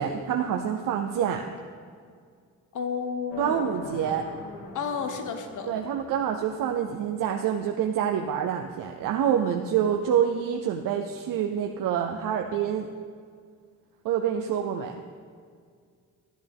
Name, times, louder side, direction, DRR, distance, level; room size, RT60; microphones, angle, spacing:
voice 1, 0.0-1.6 3.4-4.3 5.7-12.9 14.0-15.0, right 8 dB, 80° right, 3 dB, 0.6 m, -27 dB
voice 2, 2.7-3.7 4.7-5.7, left 6 dB, 65° left, 6 dB, 1.1 m, -32 dB
sound 1, 3.3-7.3, left 3 dB, 40° left, 2.5 m, -43 dB
13.0 x 9.1 x 3.5 m, 2.1 s
cardioid pair, 85°, 32 cm